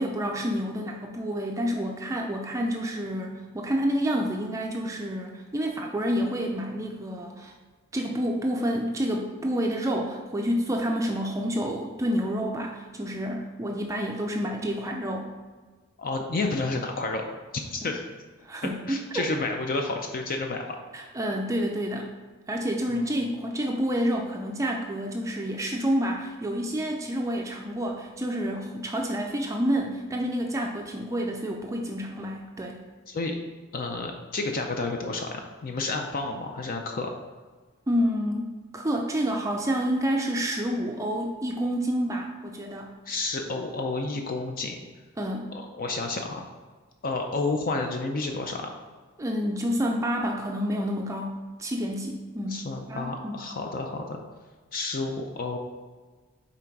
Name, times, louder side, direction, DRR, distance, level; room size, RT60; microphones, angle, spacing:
voice 1, 0.0-7.5 7.9-15.3 17.8-17.9 18.4-19.3 20.9-22.1 22.5-32.8 37.9-42.9 45.2-45.5 49.2-52.6 52.9-53.5, equal, 15° right, 1 dB, 0.4 m, -29 dB
voice 2, 16.0-17.2 17.7-18.0 18.9-20.8 22.9-23.1 33.1-33.4 33.7-37.1 43.1-44.8 45.8-46.5 47.0-48.7 52.5-54.2 54.7-55.6, left 3 dB, 45° left, 3 dB, 0.5 m, -30 dB
5.9 x 3.9 x 4.6 m, 1.4 s
head